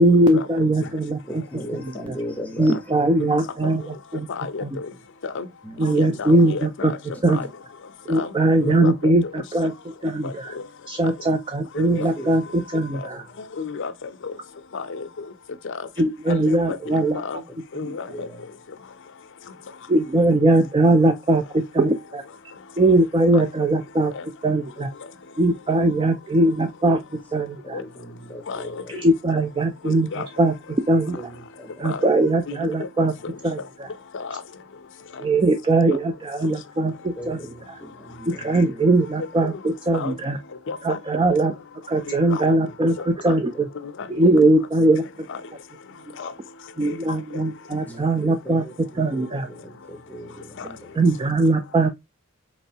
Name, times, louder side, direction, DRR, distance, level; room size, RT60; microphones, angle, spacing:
voice 1, 0.0-1.2 2.6-4.3 4.6-4.8 5.8-6.9 7.2-7.4 8.1-9.7 10.0-10.5 10.9-13.2 16.0-17.2 17.8-17.9 19.9-22.2 22.8-24.1 24.4-24.9 25.4-27.0 27.3-27.8 28.9-30.5 30.9-31.2 31.8-33.1 33.4-33.9 35.2-37.4 38.3-40.4 40.8-41.5 41.9-43.7 44.1-45.0 46.8-48.6 49.0-49.5 51.0-51.9, right 2 dB, 25° right, 0.3 m, -20 dB
voice 2, 1.3-3.4 5.6-6.5 7.4-7.5 11.9-12.3 13.1-13.4 16.9-17.0 18.1-18.4 27.6-29.0 31.1-31.7 37.2-38.9 42.6-42.7 43.3-43.6 44.2-44.4 47.9-50.9, equal, 5° left, 0.7 m, -39 dB
voice 3, 3.2-3.7 4.3-4.9 5.2-5.5 5.8-7.0 7.3-7.5 8.1-8.3 8.6-9.1 10.2-10.6 11.7-12.1 12.9-13.1 13.6-13.9 14.2-14.3 14.7-15.1 15.6-15.7 16.3-17.4 17.7-18.3 23.3-23.4 24.1-24.2 27.7-27.8 28.5-28.8 29.8-30.3 31.8-32.0 32.5-32.7 33.0-33.1 34.1-34.4 39.2-39.3 39.9-40.2 40.7-41.0 42.1-42.4 43.3-43.4 44.0-44.1 45.3-45.4 46.2-46.3 46.9-47.0, left 5 dB, 60° left, 0.5 m, -32 dB
4.2 x 3.0 x 2.7 m
head